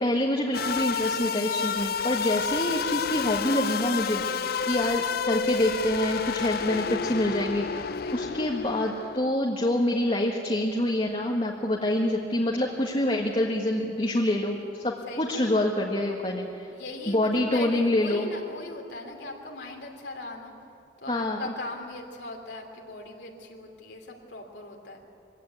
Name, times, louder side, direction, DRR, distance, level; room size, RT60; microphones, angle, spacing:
voice 1, 0.0-16.7 17.1-18.3 21.1-21.5, left 1 dB, 30° left, -1 dB, 1.6 m, -26 dB
sound 1, 0.5-9.3, left 6 dB, 55° left, 0.5 m, -30 dB
voice 2, 8.0-8.6 15.1-15.4 16.7-20.5 21.0-25.0, left 2 dB, 75° left, 1 dB, 2.8 m, -40 dB
23.0 x 16.5 x 9.4 m, 2.6 s
head